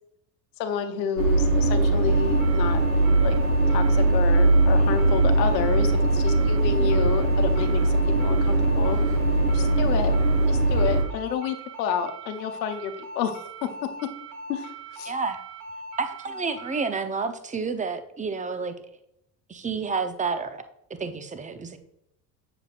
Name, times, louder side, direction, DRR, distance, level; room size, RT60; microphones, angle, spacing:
voice 1, 0.6-2.8 3.2-3.4 3.7-9.0 9.5-10.1 10.5-13.7 14.5-15.1, left 8 dB, 85° left, 7 dB, 0.9 m, -30 dB
sound 1, 1.2-11.0, right 2 dB, 85° right, 1.5 m, -21 dB
sound 2, 2.1-16.9, right 1 dB, 65° right, 2.2 m, -40 dB
voice 2, 15.0-15.4 16.0-18.7 19.5-20.6 20.9-21.8, right 4 dB, 15° right, 9 dB, 0.7 m, -30 dB
7.4 x 6.8 x 2.4 m, 0.79 s
hypercardioid pair, 65°, 49 cm